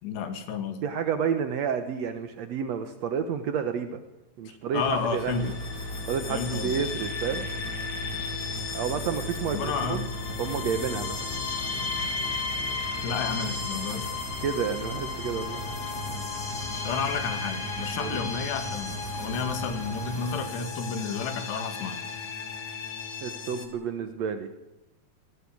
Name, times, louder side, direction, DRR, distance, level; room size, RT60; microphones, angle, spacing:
voice 1, 0.0-0.9 4.7-5.6 6.3-6.8 9.5-10.1 12.9-14.2 16.8-22.0, left 6 dB, 85° left, 8 dB, 4.0 m, -31 dB
voice 2, 0.8-4.0 4.4-5.5 6.1-7.5 8.7-10.1 10.4-11.2 14.4-15.6 18.0-18.2 23.2-24.5, right 7 dB, 90° right, 8 dB, 1.5 m, -30 dB
sound 1, 4.7-20.4, right 4 dB, 70° right, 5.1 m, -42 dB
sound 2, 5.1-23.7, left 4 dB, 45° left, 2.7 m, -34 dB
19.0 x 17.0 x 8.6 m, 0.97 s
omnidirectional pair, 4.7 m